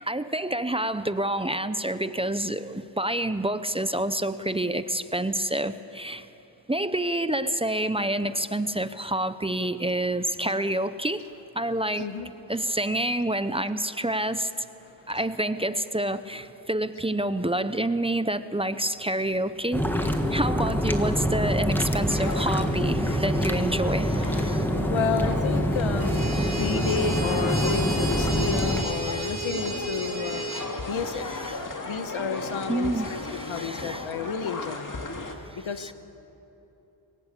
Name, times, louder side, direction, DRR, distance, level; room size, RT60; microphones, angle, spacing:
voice 1, 0.0-6.3 6.7-11.2 11.5-12.1 12.5-14.6 15.1-24.7 26.3-26.7 28.8-29.3 31.5-31.6 32.7-34.1 35.5-35.9, right 1 dB, 10° right, 12 dB, 0.7 m, -28 dB
voice 2, 12.0-12.3 14.8-15.1 24.9-30.4 30.9-31.2 31.8-33.2 33.5-35.0 35.6-35.9, left 6 dB, 90° left, 9 dB, 1.3 m, -31 dB
sound 1, 19.7-28.8, equal, 5° left, 1.5 m, -25 dB
sound 2, 22.1-35.3, left 3 dB, 40° left, 2.2 m, -36 dB
sound 3, 26.0-30.7, right 3 dB, 50° right, 2.9 m, -33 dB
22.5 x 18.5 x 8.4 m, 3.0 s
wide cardioid pair, 95°, 46 cm